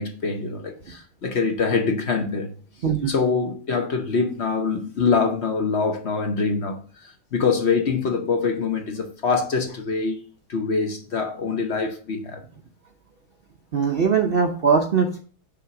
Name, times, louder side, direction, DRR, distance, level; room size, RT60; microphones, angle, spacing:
voice 1, 0.0-2.5 3.1-10.2 10.5-12.4, left 4 dB, 50° left, 0.9 m, -24 dB
voice 2, 2.8-3.1 13.7-15.2, right 6 dB, 55° right, 0.6 m, -20 dB
6.0 x 3.9 x 5.8 m
omnidirectional pair, 1.7 m